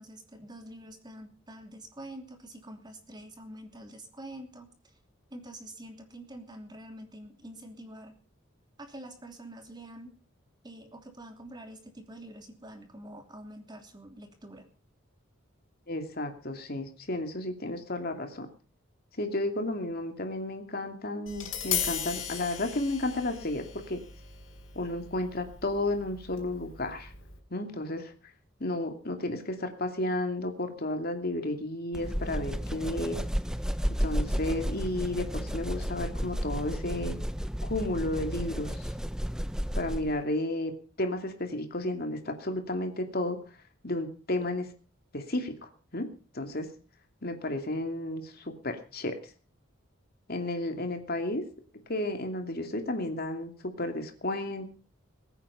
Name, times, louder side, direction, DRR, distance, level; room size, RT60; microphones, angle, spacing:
voice 1, 0.0-4.9 5.3-8.2 8.8-10.2 10.6-14.7, right 1 dB, 20° right, 4 dB, 2.9 m, -46 dB
voice 2, 15.9-18.5 19.2-24.0 24.7-27.1 27.5-28.1 28.6-33.2 34.0-37.2 37.6-38.9 39.8-43.4 43.8-44.7 45.1-46.1 46.3-46.7 47.2-49.2 50.3-51.4 51.9-53.5 53.8-54.7, left 1 dB, 50° left, 5 dB, 2.6 m, -32 dB
Tap, 21.3-27.4, left 9 dB, 75° left, 4.5 m, -37 dB
sound 1, 31.9-40.2, equal, 5° right, 0.7 m, -32 dB
21.5 x 9.2 x 5.7 m, 0.37 s
head